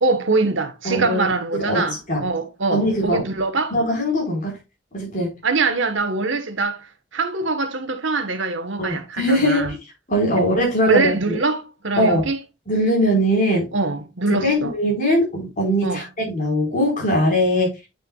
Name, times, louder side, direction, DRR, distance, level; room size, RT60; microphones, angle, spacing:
voice 1, 0.0-3.7 5.4-6.9 7.1-9.7 10.3-10.4 10.8-12.4 13.7-14.7 15.8-16.0, right 3 dB, 70° right, 1.2 m, -23 dB
voice 2, 0.8-1.8 2.1-2.3 2.7-3.2 3.7-4.6 4.9-5.4 8.8-9.8 10.1-11.4 12.0-12.3 12.7-13.7 14.3-17.7, equal, 40° left, 4.4 m, -21 dB
8.7 x 6.7 x 2.3 m
head